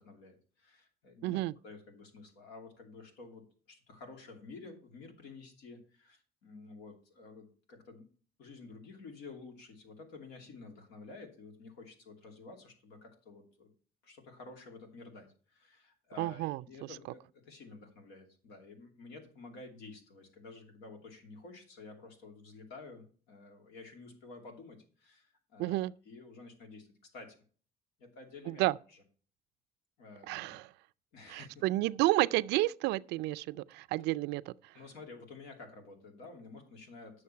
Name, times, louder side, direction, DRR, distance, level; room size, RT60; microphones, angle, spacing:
voice 1, 0.0-1.4 1.6-8.1 8.4-13.7 14.0-25.8 26.1-26.9 27.1-27.4 28.0-28.6 30.0-30.6 31.1-31.6 34.7-37.2, left 3 dB, 90° left, 2.7 m, -51 dB
voice 2, 1.2-1.5 16.2-16.6 25.6-25.9 28.5-28.8 30.3-30.7 31.3-34.7, right 18 dB, 90° right, 0.4 m, -31 dB
9.6 x 6.5 x 5.6 m
cardioid pair, 110°, 17 cm